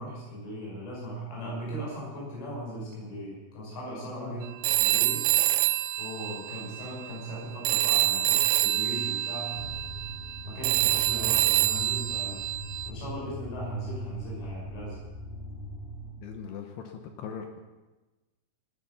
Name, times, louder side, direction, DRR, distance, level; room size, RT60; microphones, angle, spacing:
voice 1, 0.0-5.3 6.0-9.7 10.4-12.4 12.9-15.0, right 1 dB, 90° left, -4 dB, 8.5 m, -38 dB
Telephone, 4.6-7.4 7.7-12.9, right 15 dB, 85° right, 3.3 m, -26 dB
sound 1, 9.5-16.1, equal, 45° left, 2.9 m, -41 dB
voice 2, 16.2-17.6, left 7 dB, 70° left, 5 dB, 2.7 m, -40 dB
18.0 x 10.0 x 7.0 m, 1.2 s
omnidirectional pair, 5.6 m